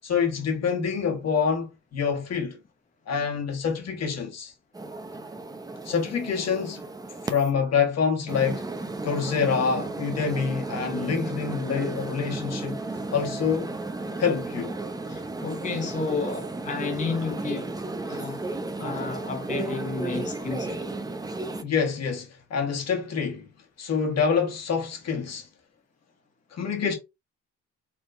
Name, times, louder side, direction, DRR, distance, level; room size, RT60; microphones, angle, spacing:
voice 1, 0.0-2.6 3.1-4.5 5.8-6.8 7.2-8.6 9.0-12.8 13.1-13.7 14.2-14.7 21.6-23.5 23.8-25.5 26.5-26.9, left 6 dB, 60° left, 1.6 m, -26 dB
sound 1, 4.7-7.5 8.3-21.6, right 2 dB, 10° right, 0.7 m, -34 dB
voice 2, 15.1-17.7 18.1-18.4 18.8-20.9, left 4 dB, 25° left, 0.9 m, -31 dB
4.4 x 3.6 x 2.6 m
cardioid pair, 90°, 30 cm